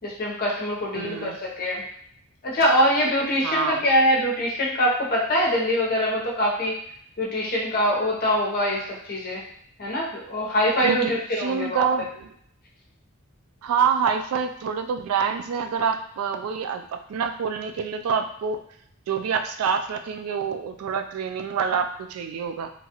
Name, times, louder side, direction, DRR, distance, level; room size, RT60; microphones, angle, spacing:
voice 1, 0.0-1.8 2.4-6.7 7.2-9.4 9.8-11.9, equal, 45° left, -4 dB, 0.7 m, -23 dB
voice 2, 0.9-1.4 3.4-3.9 10.8-12.3 13.6-16.8 17.1-18.6 19.1-22.7, right 6 dB, 90° right, 6 dB, 0.3 m, -26 dB
2.9 x 2.3 x 2.9 m, 0.67 s
head